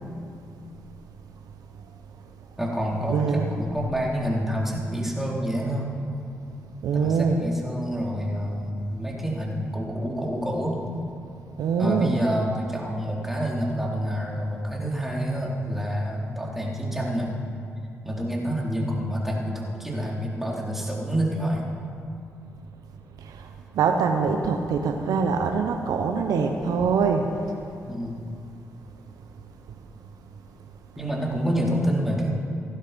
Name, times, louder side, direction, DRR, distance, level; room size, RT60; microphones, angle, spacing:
voice 1, 2.6-5.9 6.9-10.9 11.8-17.4 18.0-21.7 27.9-28.2 31.0-32.3, equal, 5° right, -3 dB, 4.1 m, -28 dB
voice 2, 3.1-3.5 6.8-7.4 11.6-12.1 23.7-27.3, right 5 dB, 75° right, 5 dB, 1.0 m, -23 dB
16.5 x 11.5 x 5.3 m, 2.4 s
supercardioid pair, 45°, 6 cm